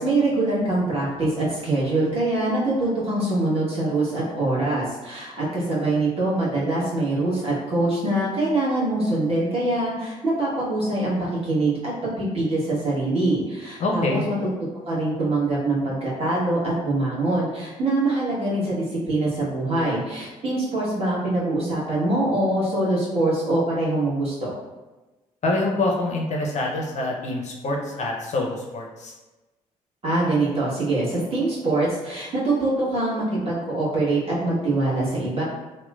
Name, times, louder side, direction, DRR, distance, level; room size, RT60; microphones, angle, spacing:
voice 1, 0.0-11.2 11.4-14.2 14.9-24.5 30.0-35.4, right 2 dB, 35° right, -7 dB, 1.2 m, -24 dB
voice 2, 13.8-14.2 25.4-29.1, left 2 dB, 40° left, -1 dB, 0.6 m, -25 dB
2.9 x 2.1 x 2.2 m, 1.1 s
figure-of-eight pair, 45°, 18 cm